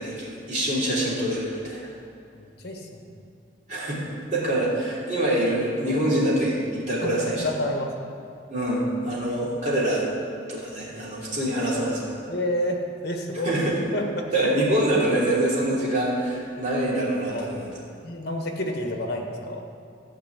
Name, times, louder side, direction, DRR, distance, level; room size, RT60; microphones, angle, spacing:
voice 1, 0.0-1.9 3.7-4.0 4.3-7.4 8.5-10.0 10.5-12.1 13.4-13.8 14.3-17.8, right 1 dB, 40° right, -6 dB, 3.0 m, -25 dB
voice 2, 2.4-3.0 7.0-7.9 12.3-13.5 13.9-14.3 17.3-17.5 18.0-19.7, left 1 dB, 55° left, 2 dB, 1.4 m, -29 dB
12.5 x 5.3 x 8.3 m, 2.5 s
head